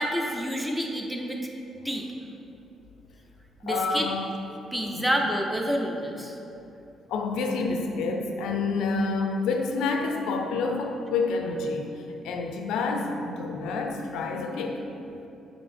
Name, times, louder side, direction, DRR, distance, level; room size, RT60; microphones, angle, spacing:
voice 1, 0.0-1.4 1.8-2.1 3.6-4.1 4.7-6.3, equal, 5° right, 1 dB, 0.5 m, -28 dB
voice 2, 3.7-4.3 4.9-5.2 7.1-11.9 12.2-14.8, left 4 dB, 90° left, 3 dB, 0.3 m, -28 dB
5.5 x 2.7 x 3.4 m, 2.8 s
cardioid pair, 90°, 0 cm